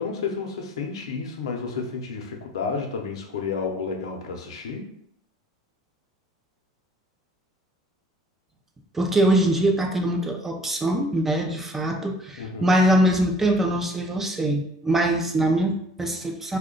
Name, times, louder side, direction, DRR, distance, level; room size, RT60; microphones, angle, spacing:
voice 1, 0.0-4.9 12.4-12.8, left 5 dB, 80° left, 2 dB, 0.7 m, -31 dB
voice 2, 8.9-16.6, right 1 dB, 10° right, 3 dB, 0.4 m, -23 dB
2.8 x 2.2 x 3.7 m, 0.70 s
hypercardioid pair, 130°, 3 cm